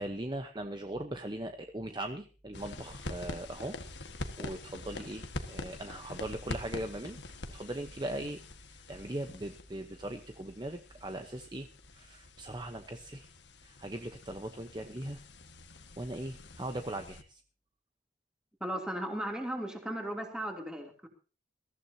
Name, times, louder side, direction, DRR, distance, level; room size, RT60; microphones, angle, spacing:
voice 1, 0.0-3.8 4.4-7.2 7.5-8.4 8.7-13.3 13.6-15.2 16.0-17.4, right 1 dB, 25° right, 6 dB, 0.9 m, -39 dB
sound 1, 2.5-17.2, left 2 dB, 90° left, 1.7 m, -45 dB
voice 2, 18.6-21.1, right 1 dB, 5° right, 2 dB, 2.9 m, -36 dB
22.0 x 14.5 x 2.8 m, 0.35 s
head